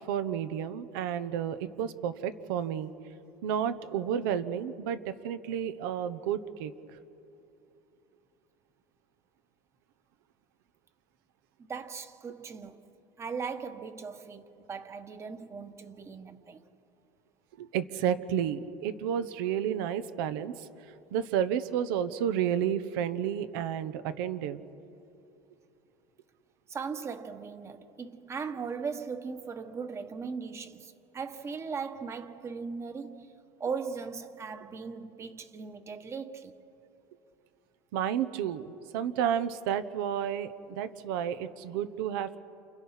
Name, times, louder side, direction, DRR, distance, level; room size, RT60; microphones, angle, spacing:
voice 1, 0.1-2.9 3.4-5.0 5.2-6.7 17.6-20.7 21.1-24.6 37.9-42.4, right 9 dB, 80° right, 1.1 m, -31 dB
voice 2, 11.6-12.8 13.2-16.7 26.7-36.5, right 5 dB, 25° right, 1.3 m, -38 dB
29.5 x 28.5 x 5.8 m
supercardioid pair, 130°, 11 cm